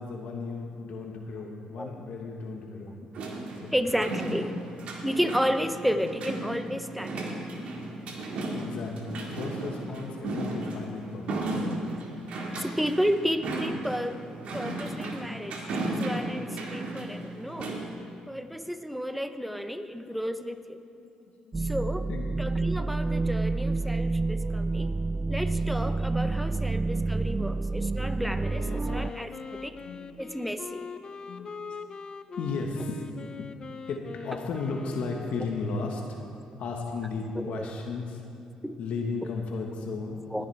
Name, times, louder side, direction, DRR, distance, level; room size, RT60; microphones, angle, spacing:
voice 1, 0.0-3.7 8.5-11.6 12.2-12.3 19.4-19.7 20.0-20.6 20.9-21.1 21.4-21.8 22.1-22.3 26.5-26.6 28.0-28.6 28.8-30.1 31.3-31.8 32.4-33.1 33.4-33.6 33.9-36.2 36.6-38.2 38.8-40.5, left 4 dB, 70° left, 1 dB, 1.3 m, -36 dB
sound 1, 3.1-17.9, right 2 dB, 70° right, 1.9 m, -35 dB
voice 2, 3.7-4.6 5.0-7.4 12.6-14.2 14.5-17.7 18.3-20.8 21.6-22.1 22.4-24.9 25.3-29.8 30.2-30.9 37.4-37.7 38.6-38.8 39.2-39.3 40.3-40.5, equal, ahead, 9 dB, 0.7 m, -32 dB
sound 2, 21.5-29.1, right 3 dB, 25° right, 0.3 m, -28 dB
Wind instrument woodwind instrument, 28.4-36.1, left 5 dB, 35° left, 0.5 m, -42 dB
19.5 x 10.5 x 3.4 m, 2.6 s
cardioid pair, 85°, 2 cm